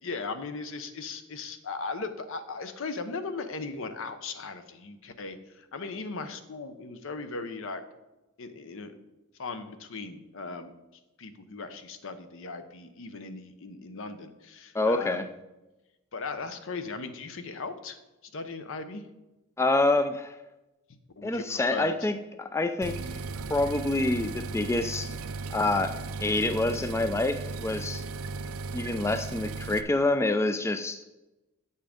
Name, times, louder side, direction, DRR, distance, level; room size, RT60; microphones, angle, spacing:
voice 1, 0.0-7.8 8.4-8.9 9.4-10.7 11.2-15.3 16.1-18.0 18.2-19.0 21.2-22.1, left 4 dB, 65° left, 10 dB, 0.8 m, -38 dB
voice 2, 14.7-15.2 19.6-20.4 21.2-23.2 23.5-25.1 25.5-28.0 28.7-31.0, left 2 dB, 15° left, 9 dB, 0.3 m, -27 dB
sound 1, 22.8-29.8, right 4 dB, 90° right, 0.5 m, -36 dB
8.1 x 5.6 x 5.1 m, 1.0 s
head